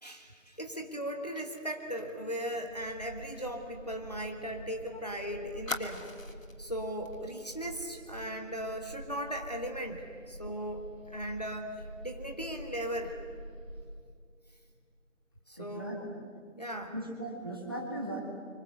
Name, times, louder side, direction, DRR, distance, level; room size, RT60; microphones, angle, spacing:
voice 1, 0.0-6.1 6.6-13.2 15.5-16.1 16.6-16.9, equal, 30° left, 4 dB, 1.6 m, -38 dB
Fire, 1.4-4.8 5.1-5.2 5.7-6.6 7.0-7.2 7.5-7.8, left 2 dB, 80° left, 2.5 m, -44 dB
sound 1, 2.6-13.8, right 1 dB, ahead, 3.2 m, -47 dB
voice 2, 15.6-16.0 16.9-18.2, right 1 dB, 15° right, 0 dB, 2.1 m, -38 dB
29.5 x 25.0 x 8.0 m, 2.2 s
figure-of-eight pair, 175°, 39 cm